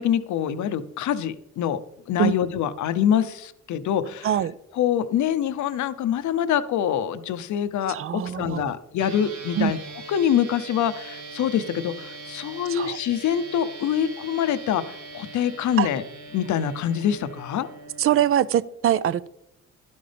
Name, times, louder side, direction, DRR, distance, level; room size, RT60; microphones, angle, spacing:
voice 1, 0.0-1.8 2.1-4.3 4.7-9.8 10.1-16.0 16.3-17.7, left 9 dB, 70° left, 13 dB, 0.7 m, -25 dB
voice 2, 4.2-4.5 7.9-8.7 9.6-9.7 12.7-13.0 15.8-15.9 18.0-19.3, right 10 dB, 45° right, 18 dB, 0.4 m, -23 dB
sound 1, 9.0-18.3, right 3 dB, 70° right, 1.6 m, -41 dB
11.5 x 9.5 x 3.4 m, 0.82 s
cardioid pair, 90°, 30 cm